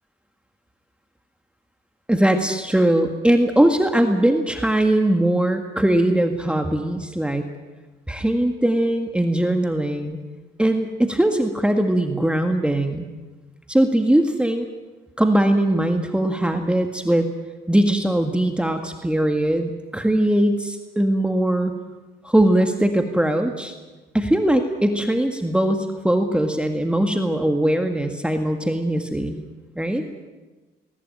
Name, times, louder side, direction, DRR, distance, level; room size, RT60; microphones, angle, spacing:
voice 1, 2.1-7.5 8.1-10.2 10.6-13.1 13.7-14.7 15.2-17.3 17.7-21.7 22.2-23.7 24.1-29.4 29.8-30.0, right 1 dB, 5° right, 5 dB, 1.8 m, -20 dB
20.5 x 19.5 x 9.1 m, 1.2 s
cardioid pair, 105°, 19 cm